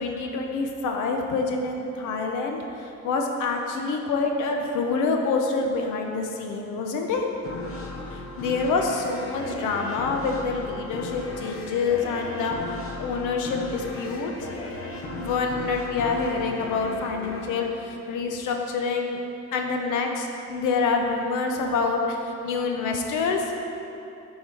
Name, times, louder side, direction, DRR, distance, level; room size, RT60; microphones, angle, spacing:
voice 1, 0.0-7.3 8.1-12.6 13.0-14.3 15.2-19.2 19.5-23.5, left 4 dB, 90° left, 3 dB, 0.7 m, -27 dB
sound 1, 7.4-18.6, left 2 dB, 50° left, 0.9 m, -36 dB
7.2 x 3.7 x 4.7 m, 2.7 s
cardioid pair, 90°, 30 cm